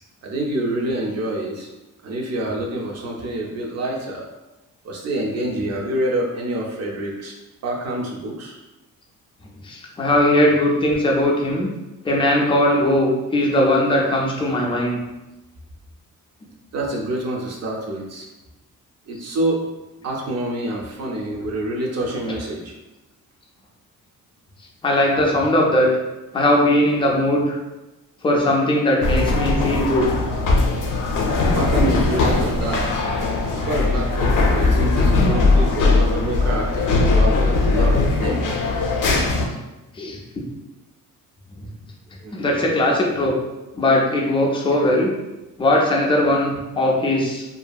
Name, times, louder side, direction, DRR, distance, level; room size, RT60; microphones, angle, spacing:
voice 1, 0.2-1.7 2.0-4.3 4.8-7.3 7.6-8.6 16.7-18.3 19.1-19.6 20.0-22.8 31.5-33.0 33.5-38.6 42.2-42.4, right 1 dB, 50° right, -1 dB, 0.5 m, -26 dB
voice 2, 9.6-11.7 12.0-15.0 22.3-22.4 24.8-25.9 26.3-27.6 28.2-30.2 40.0-40.4 42.3-43.3 43.7-45.1 45.6-47.5, left 1 dB, 15° left, -1 dB, 0.3 m, -19 dB
sound 1, 29.0-39.5, left 3 dB, 70° left, 0.5 m, -19 dB
2.7 x 2.5 x 2.2 m, 1.0 s
wide cardioid pair, 170°, 34 cm